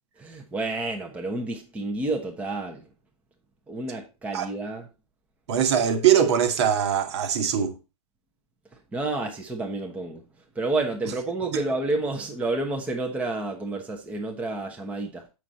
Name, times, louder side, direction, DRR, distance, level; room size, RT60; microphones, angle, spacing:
voice 1, 0.2-2.9 3.7-4.9 8.9-10.2 10.5-15.2, right 2 dB, 5° right, 1.1 m, -30 dB
voice 2, 5.5-7.7 11.5-11.6, right 8 dB, 45° right, 1.6 m, -22 dB
7.4 x 6.2 x 4.1 m
figure-of-eight pair, 125°, 19 cm